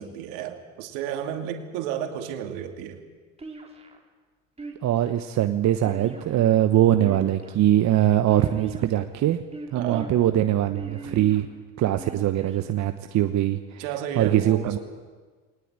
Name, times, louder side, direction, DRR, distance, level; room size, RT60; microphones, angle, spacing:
voice 1, 0.0-3.0 9.7-10.1 13.8-14.8, right 9 dB, 70° right, 6 dB, 2.7 m, -32 dB
sound 1, 3.4-4.0 4.6-5.1 5.8-6.5 7.0-7.6 8.3-9.0 9.5-10.1 10.7-11.4 12.0-12.6, right 3 dB, 15° right, 3.8 m, -40 dB
voice 2, 4.8-9.4 9.7-11.5 11.8-13.9 14.2-14.8, right 12 dB, 45° right, 9 dB, 1.1 m, -22 dB
21.0 x 19.0 x 9.0 m, 1.5 s
hypercardioid pair, 70°, 39 cm